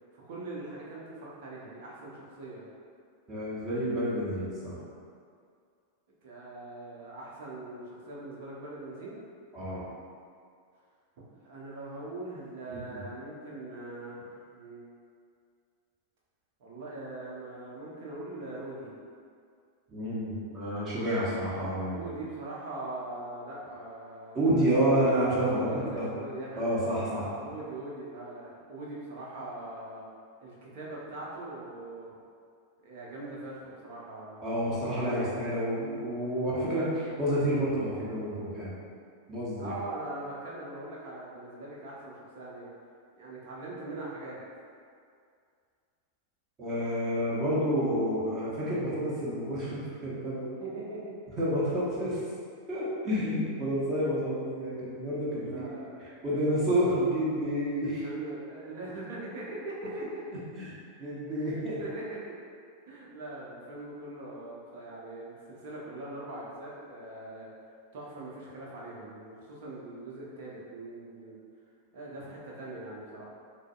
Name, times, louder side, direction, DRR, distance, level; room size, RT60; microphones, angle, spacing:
voice 1, 0.1-2.7 6.2-9.2 11.4-14.8 16.6-18.9 21.9-24.6 25.4-26.6 27.1-30.0 30.4-32.1 32.8-34.4 35.0-35.3 39.6-42.7 43.1-44.4 50.6-51.1 55.4-56.0 57.8-60.7 61.3-62.3 62.9-67.5 67.9-71.4 71.9-73.2, right 2 dB, 50° right, -5 dB, 0.8 m, -41 dB
voice 2, 3.3-4.8 9.5-9.9 12.7-13.0 19.9-22.1 24.3-26.1 26.6-27.2 34.4-38.8 39.3-39.8 46.6-50.4 51.4-52.2 52.7-55.6 56.0-58.0 60.5-60.7 61.0-61.8, equal, 25° right, -8 dB, 1.1 m, -29 dB
6.1 x 2.1 x 2.3 m, 2.2 s
figure-of-eight pair, 90°, 0 cm